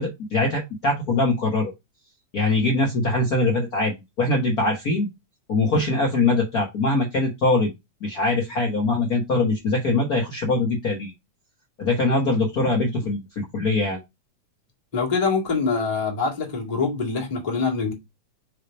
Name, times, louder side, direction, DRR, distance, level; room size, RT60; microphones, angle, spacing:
voice 1, 0.0-1.7 2.3-5.1 5.5-7.7 8.0-11.1 11.8-14.0, left 2 dB, 80° left, 0.8 m, -22 dB
voice 2, 14.9-17.9, left 4 dB, 15° left, 1.5 m, -24 dB
5.6 x 3.3 x 5.1 m
omnidirectional pair, 3.5 m